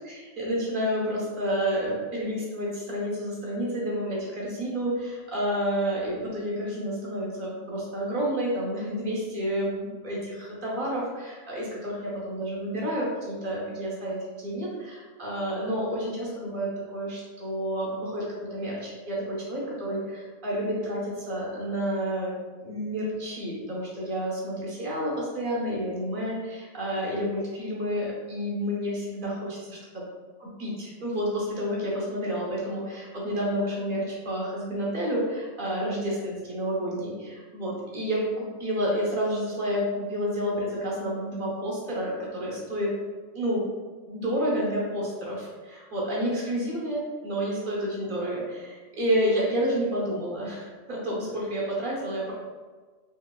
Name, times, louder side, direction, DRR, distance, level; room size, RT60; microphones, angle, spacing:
voice 1, 0.0-22.3 22.6-30.0 30.4-42.9 43.3-43.6 44.1-52.3, equal, 45° right, -5 dB, 0.8 m, -30 dB
3.1 x 2.8 x 2.2 m, 1.4 s
omnidirectional pair, 1.4 m